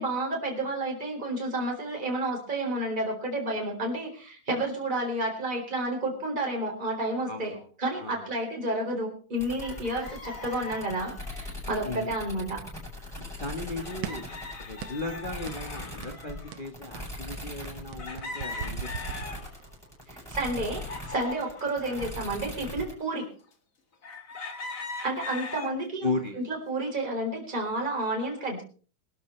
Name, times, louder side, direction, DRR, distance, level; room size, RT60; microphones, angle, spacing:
voice 1, 0.0-7.5 7.8-12.6 20.1-23.3 24.6-26.1 26.4-28.6, right 1 dB, 15° right, 0 dB, 4.2 m, -31 dB
voice 2, 7.3-7.7 8.0-8.3 11.8-12.1 13.2-14.3 14.6-19.5 26.0-26.4, left 2 dB, 70° left, 3 dB, 0.4 m, -36 dB
sound 1, 9.4-22.9, left 1 dB, ahead, 7.7 m, -41 dB
sound 2, 9.6-11.5 12.7-12.8 13.1-13.2 13.8-16.6 17.2-17.3 18.0-19.7 20.2-22.1 22.8-22.9 24.0-25.7 26.3-26.7, left 3 dB, 35° left, 1.5 m, -40 dB
sound 3, 14.0-14.4 14.8-15.1 15.5-15.7 16.0-16.2 16.5-19.8, right 10 dB, 70° right, 1.6 m, -39 dB
24.0 x 12.5 x 3.3 m, 0.40 s
omnidirectional pair, 3.5 m